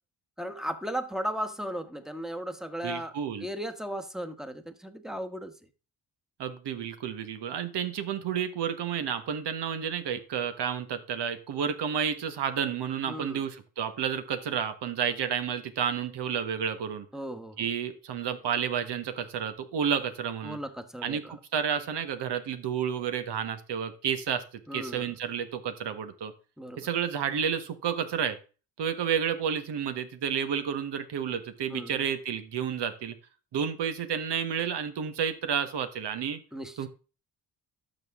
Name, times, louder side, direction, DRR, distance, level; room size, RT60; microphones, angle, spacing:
voice 1, 0.4-3.1 3.4-5.5 13.1-13.4 17.1-17.7 20.4-21.4 24.7-25.1 26.6-26.9 31.7-32.0 36.5-36.8, equal, ahead, 1.2 m, -36 dB
voice 2, 2.8-3.5 6.4-17.1 17.6-20.6 21.0-24.4 24.7-26.3 26.8-28.4 28.8-33.1 33.5-36.4 36.8-36.9, right 8 dB, 75° right, 1.3 m, -31 dB
12.0 x 6.4 x 3.6 m
cardioid pair, 85°, 41 cm